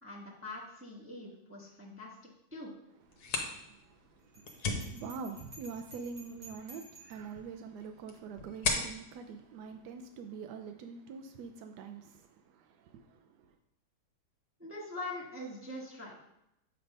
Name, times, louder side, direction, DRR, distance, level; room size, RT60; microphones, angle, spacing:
voice 1, 0.0-2.1 2.5-2.7 14.6-16.2, left 2 dB, 10° right, 0.9 m, -43 dB
sound 1, 3.0-10.5, left 3 dB, 60° left, 1.3 m, -40 dB
voice 2, 3.1-13.6, right 5 dB, 75° right, 0.9 m, -45 dB
Bell, 4.3-7.3, right 1 dB, 50° right, 1.5 m, -53 dB
7.8 x 3.4 x 5.3 m
omnidirectional pair, 2.2 m